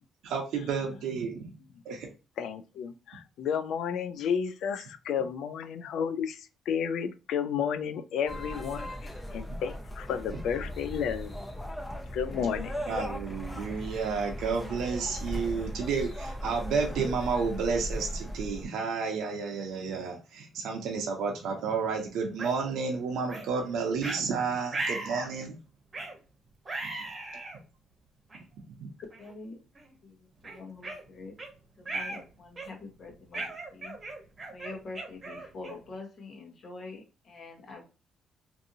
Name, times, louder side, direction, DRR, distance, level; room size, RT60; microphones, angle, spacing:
voice 1, 0.2-1.5 1.8-2.1 12.9-25.6 26.8-27.4 28.7-28.9, right 5 dB, 80° right, 0.6 m, -31 dB
voice 2, 2.4-11.5 12.1-12.8, left 7 dB, 80° left, 0.3 m, -32 dB
sound 1, 8.3-18.6, equal, 15° left, 0.6 m, -38 dB
sound 2, 22.4-22.5 23.3-23.5 24.0-24.2 24.7-25.3 25.9-26.2 26.7-27.6 28.3-28.4 29.1-29.3 29.8-29.9 30.4-31.5 31.9-32.2 32.6-32.9 33.3-35.9, right 2 dB, 30° right, 1.0 m, -37 dB
voice 3, 29.2-29.6 30.0-31.4 31.8-33.9 34.5-37.9, left 3 dB, 55° left, 1.0 m, -45 dB
2.6 x 2.6 x 2.6 m
cardioid pair, 90°, 0 cm